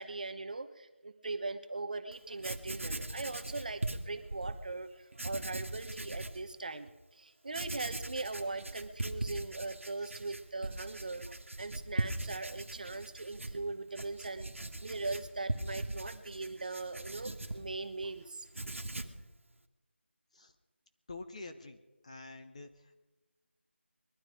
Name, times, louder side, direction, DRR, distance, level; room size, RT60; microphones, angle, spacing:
voice 1, 0.0-6.9 7.2-18.5, right 3 dB, 40° right, 9 dB, 1.1 m, -40 dB
Writing, 2.1-2.2 2.4-4.6 5.1-6.4 6.9-7.0 7.5-18.1 18.4-19.2, right 2 dB, 85° right, 1.7 m, -40 dB
voice 2, 21.1-23.0, left 3 dB, 30° left, 6 dB, 1.2 m, -47 dB
21.5 x 12.5 x 5.1 m, 1.1 s
figure-of-eight pair, 175°, 7 cm